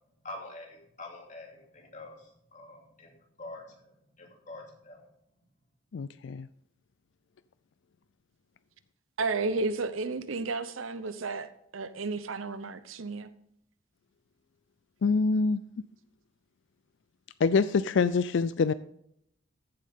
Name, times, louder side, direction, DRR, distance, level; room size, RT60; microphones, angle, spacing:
voice 1, 0.2-5.1, left 2 dB, 35° left, 2.8 m, -46 dB
voice 2, 5.9-6.5 15.0-15.6 17.4-18.7, left 4 dB, 65° left, 0.4 m, -25 dB
voice 3, 9.2-13.3, right 3 dB, 85° right, 0.9 m, -32 dB
14.5 x 7.6 x 3.7 m
head